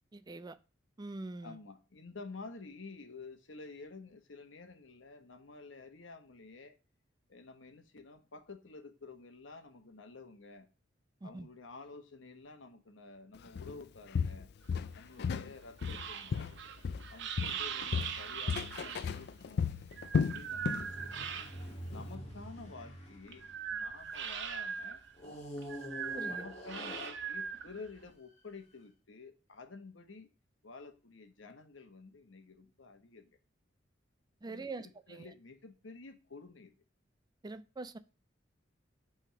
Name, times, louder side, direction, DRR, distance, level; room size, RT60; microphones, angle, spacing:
voice 1, 0.1-0.6 1.0-1.6 11.2-11.5 26.1-26.4 34.4-35.3 37.4-38.0, right 2 dB, 20° right, 0.4 m, -44 dB
voice 2, 1.4-6.8 7.3-10.7 11.2-14.5 14.9-16.5 17.1-19.7 20.1-21.5 21.9-25.0 26.2-30.3 30.6-33.4 34.4-36.7, left 3 dB, 85° left, 1.1 m, -51 dB
Walk footsteps, 13.6-13.8 14.1-15.5 15.8-17.1 17.4-20.9 21.2-21.5 21.9-22.0, left 6 dB, 60° left, 0.4 m, -34 dB
sound 1, 14.6-21.9 22.3-28.1, right 7 dB, 65° right, 0.7 m, -41 dB
sound 2, 19.7-24.4 25.2-27.7 28.4-28.5, equal, 35° left, 1.8 m, -47 dB
5.8 x 3.6 x 5.7 m
head